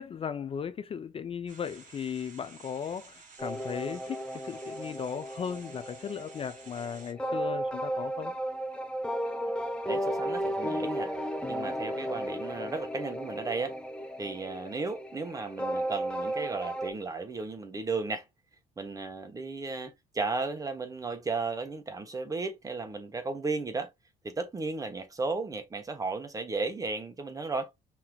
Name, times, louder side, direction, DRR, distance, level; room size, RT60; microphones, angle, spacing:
voice 1, 0.0-8.4, left 7 dB, 35° left, 0.4 m, -37 dB
sound 1, 1.5-7.1, right 5 dB, 50° right, 2.2 m, -53 dB
sound 2, 3.4-16.9, right 1 dB, 5° left, 0.8 m, -34 dB
voice 2, 9.9-11.2 11.5-13.7 14.2-18.2 18.8-23.9 24.2-27.7, right 3 dB, 20° right, 1.1 m, -34 dB
5.7 x 2.9 x 2.3 m
cardioid pair, 110°, 17 cm